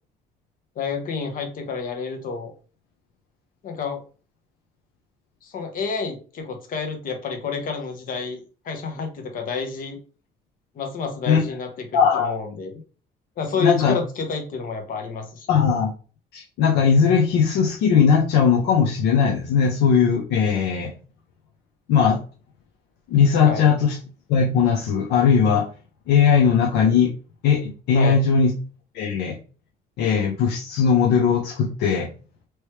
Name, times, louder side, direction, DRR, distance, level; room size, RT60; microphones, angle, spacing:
voice 1, 0.8-2.5 3.6-4.0 5.4-10.0 10.7-11.9 12.1-12.8 13.4-15.5 23.4-23.7 27.9-28.2, left 5 dB, 55° left, 4 dB, 1.0 m, -29 dB
voice 2, 11.9-12.3 13.6-14.0 15.5-15.9 16.3-20.9 21.9-22.2 23.1-24.0 24.3-25.7 26.1-27.1 27.4-28.5 28.9-29.4 30.0-32.1, left 6 dB, 80° left, 1 dB, 0.7 m, -19 dB
3.1 x 3.0 x 3.1 m, 0.37 s
cardioid pair, 110°, 17 cm